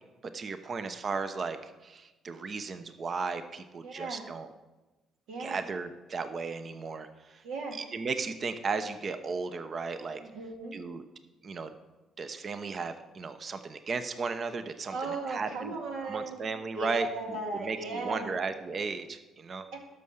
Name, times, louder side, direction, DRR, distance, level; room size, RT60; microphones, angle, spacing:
voice 1, 0.3-4.5 5.4-7.4 7.8-10.2 10.7-11.0 11.4-11.7 12.2-15.7 16.0-19.7, right 4 dB, 45° right, 10 dB, 0.8 m, -35 dB
voice 2, 3.8-4.2 5.3-5.6 7.4-7.8 10.2-10.8 14.9-16.5 16.7-18.4 19.7-19.8, right 2 dB, 80° right, 1 dB, 2.0 m, -36 dB
12.0 x 5.7 x 6.5 m, 1.1 s
supercardioid pair, 70°, 0 cm